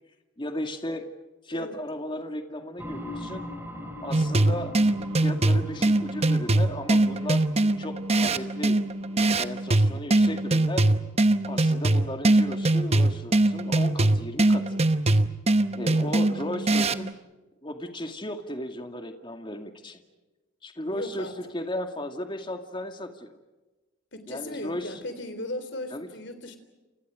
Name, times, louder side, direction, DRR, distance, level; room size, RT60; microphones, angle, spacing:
voice 1, 0.4-1.1 1.4-3.5 4.0-4.7 5.2-8.8 9.1-10.9 11.5-14.8 15.7-17.2 17.6-20.0 20.6-23.4 24.3-25.0 25.9-26.1, left 1 dB, 25° left, 6 dB, 2.2 m, -35 dB
sound 1, 2.8-12.3, left 1 dB, 10° right, 4.3 m, -42 dB
sound 2, 4.1-17.1, right 2 dB, 30° right, 1.0 m, -22 dB
voice 2, 15.8-16.2 20.9-21.4 24.1-26.6, left 1 dB, 60° left, 10 dB, 3.7 m, -37 dB
29.5 x 29.0 x 5.0 m, 1.2 s
head